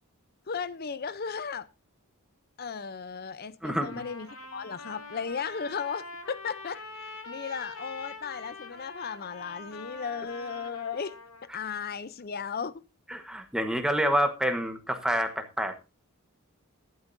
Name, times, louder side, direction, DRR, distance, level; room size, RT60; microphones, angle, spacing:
voice 1, 0.5-1.7 2.6-11.2 11.5-12.8, left 6 dB, 45° left, 0.6 m, -36 dB
voice 2, 3.6-4.0 13.1-15.8, equal, 5° right, 1.2 m, -28 dB
Trumpet, 3.8-11.5, left 2 dB, 65° left, 2.9 m, -44 dB
21.5 x 9.0 x 2.6 m
head